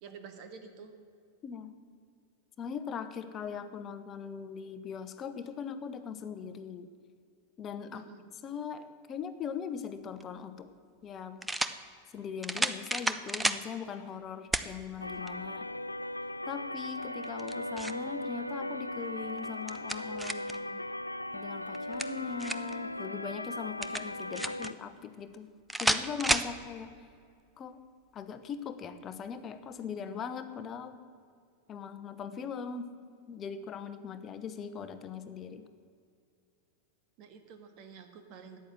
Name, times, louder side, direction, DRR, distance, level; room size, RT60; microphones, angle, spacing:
voice 1, 0.0-0.9 7.9-8.2 37.2-38.6, right 6 dB, 40° right, 7 dB, 1.6 m, -49 dB
voice 2, 1.4-1.7 2.6-6.9 7.6-8.0 8.4-10.7 11.0-11.5 12.1-15.7 16.5-20.8 21.3-25.5 25.8-26.9 27.6-27.8 28.1-31.0 31.7-32.9 33.3-35.7, left 7 dB, 30° left, 11 dB, 1.0 m, -40 dB
sound 1, 10.2-10.3 11.4-11.8 12.4-13.6 14.5-14.7 15.3-15.4 17.2-18.0 19.4-20.6 21.7-22.8 23.8-24.7 25.7-26.5, right 1 dB, 5° right, 0.6 m, -31 dB
sound 2, 15.0-24.7, left 1 dB, 85° left, 0.4 m, -38 dB
13.5 x 9.6 x 7.7 m, 2.3 s
figure-of-eight pair, 90°, 0 cm